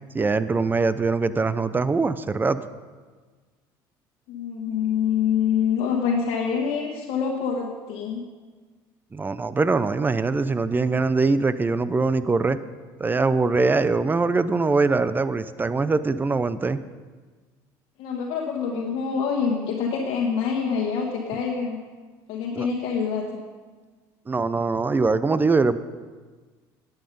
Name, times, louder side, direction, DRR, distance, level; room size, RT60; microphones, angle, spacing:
voice 1, 0.1-2.6 9.1-12.6 13.0-16.8 22.6-22.7 24.3-25.8, right 3 dB, 20° right, 14 dB, 0.5 m, -22 dB
voice 2, 4.3-8.2 18.0-21.8 22.3-23.3, left 6 dB, 70° left, -2 dB, 1.3 m, -25 dB
11.0 x 8.0 x 5.3 m, 1.4 s
supercardioid pair, 90°, 10 cm